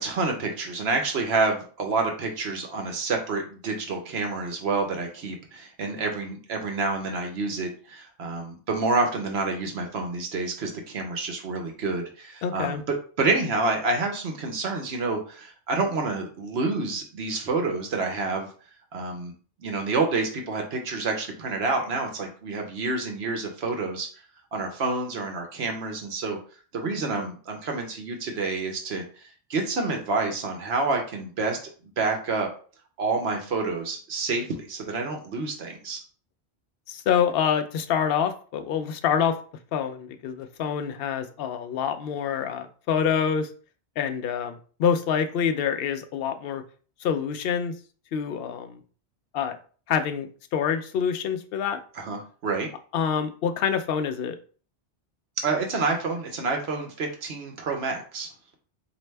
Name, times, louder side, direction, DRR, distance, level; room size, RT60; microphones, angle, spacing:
voice 1, 0.0-12.8 13.2-18.5 18.9-19.3 19.6-24.1 24.5-26.4 26.7-31.6 32.0-32.5 33.0-36.0 51.9-52.7 55.4-58.3, right 3 dB, 70° right, 3 dB, 1.0 m, -28 dB
voice 2, 12.4-12.8 36.9-39.4 39.7-43.5 44.0-46.6 47.0-47.7 48.1-48.8 49.3-49.6 49.9-51.8 52.9-54.4, left 7 dB, 65° left, 8 dB, 0.7 m, -26 dB
4.2 x 2.7 x 3.3 m, 0.41 s
omnidirectional pair, 1.1 m